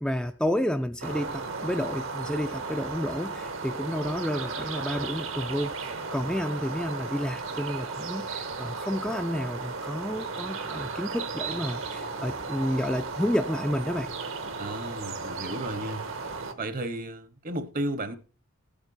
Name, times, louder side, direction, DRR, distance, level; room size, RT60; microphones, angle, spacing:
voice 1, 0.0-14.1, equal, 5° left, 0.4 m, -30 dB
sound 1, 1.0-16.5, right 4 dB, 65° right, 1.3 m, -35 dB
voice 2, 14.6-16.1 16.5-18.2, right 1 dB, 40° right, 1.0 m, -33 dB
16.0 x 8.9 x 2.6 m
head